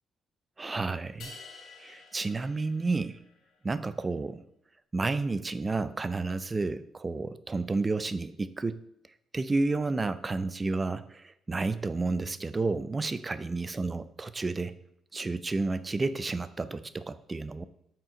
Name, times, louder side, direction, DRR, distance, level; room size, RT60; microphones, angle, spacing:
voice 1, 0.6-1.3 1.8-3.2 3.6-4.4 4.9-8.8 9.3-14.7 15.1-17.6, right 3 dB, 25° right, 13 dB, 0.4 m, -31 dB
sound 1, 1.2-3.5, left 4 dB, 65° left, 1.7 m, -50 dB
8.1 x 4.5 x 3.7 m, 0.76 s
cardioid pair, 90°, 0 cm